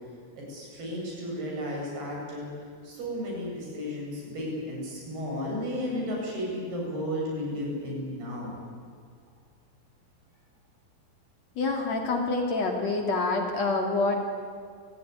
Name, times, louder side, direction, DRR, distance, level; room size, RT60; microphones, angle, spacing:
voice 1, 0.4-2.5 2.8-8.5, equal, 80° right, -2 dB, 9.8 m, -33 dB
voice 2, 11.6-14.2, left 3 dB, 45° left, 2 dB, 3.6 m, -27 dB
30.0 x 17.0 x 9.9 m, 2.1 s
omnidirectional pair, 4.5 m